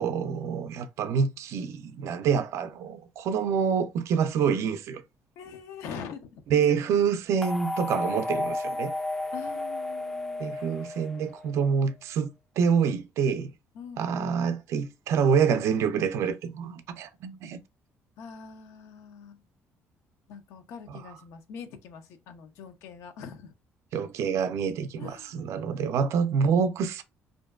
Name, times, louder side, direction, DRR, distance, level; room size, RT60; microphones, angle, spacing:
voice 1, 0.0-5.0 6.5-8.9 10.4-12.3 12.6-13.5 14.0-17.6 20.9-21.0 23.9-27.0, right 6 dB, 70° right, 0.4 m, -26 dB
voice 2, 5.4-6.8 9.3-10.6 13.7-14.4 18.2-19.4 20.3-23.5 25.0-25.4, left 7 dB, 80° left, 0.5 m, -43 dB
sound 1, 7.4-11.6, left 2 dB, 5° left, 0.3 m, -32 dB
2.5 x 2.2 x 2.2 m
cardioid pair, 85°, 5 cm